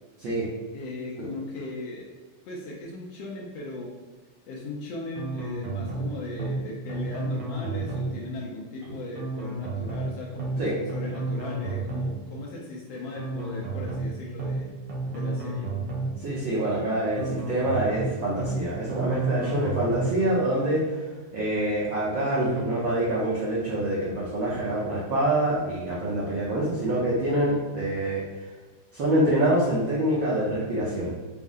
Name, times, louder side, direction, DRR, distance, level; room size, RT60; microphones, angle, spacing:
voice 1, 0.7-2.1 2.4-3.9 4.5-14.7 15.1-15.7, left 2 dB, 75° left, -2 dB, 1.5 m, -37 dB
sound 1, 5.2-6.1 6.4-6.6 6.9-8.1 9.2-10.1 10.4-10.6 10.9-12.1 13.2-14.1 14.4-14.6 14.9-16.1 17.2-18.1 18.4-18.6 18.9-20.1, right 2 dB, 65° right, 1.3 m, -31 dB
voice 2, 16.2-21.0 21.3-28.3 28.9-31.3, right 1 dB, 85° right, -6 dB, 1.0 m, -26 dB
5.4 x 2.1 x 3.6 m, 1.3 s
omnidirectional pair, 3.3 m